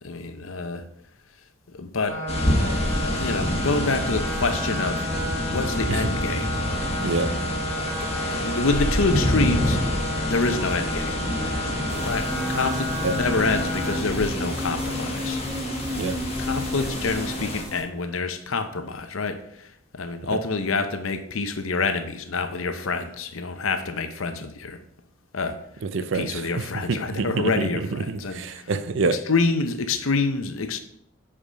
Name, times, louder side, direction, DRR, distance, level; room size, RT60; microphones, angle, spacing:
voice 1, 0.0-0.8 1.7-2.2 2.6-5.0 5.4-6.5 8.3-9.8 10.3-11.2 12.0-15.4 16.4-19.4 19.9-24.8 25.3-25.6 26.1-28.6 29.3-30.8, left 3 dB, 75° left, 0.8 m, -27 dB
sound 1, 2.1-14.0, equal, 40° right, 2.0 m, -32 dB
sound 2, 2.3-17.6, left 1 dB, 30° left, 1.3 m, -28 dB
voice 2, 7.0-7.3 13.0-13.2 16.0-16.2 20.3-20.4 25.8-29.2, right 4 dB, 65° right, 0.5 m, -27 dB
sound 3, 11.9-17.8, equal, 5° right, 1.3 m, -32 dB
7.7 x 4.9 x 5.0 m
head